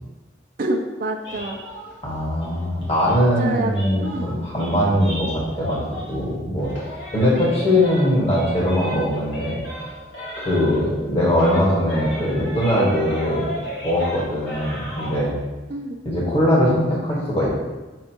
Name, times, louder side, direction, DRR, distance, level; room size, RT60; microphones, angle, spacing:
voice 1, 0.6-1.6 3.1-3.7 4.0-4.3 15.7-16.0, right 2 dB, 50° right, 1 dB, 0.6 m, -27 dB
sound 1, 1.2-6.3 6.6-11.1 11.3-15.2, equal, 70° left, 2.0 m, -35 dB
voice 2, 2.0-5.8 6.1-6.7 7.1-9.6 10.3-13.5 13.8-15.3 16.0-17.5, equal, 35° left, -5 dB, 1.7 m, -21 dB
7.5 x 5.3 x 3.0 m, 1.2 s
head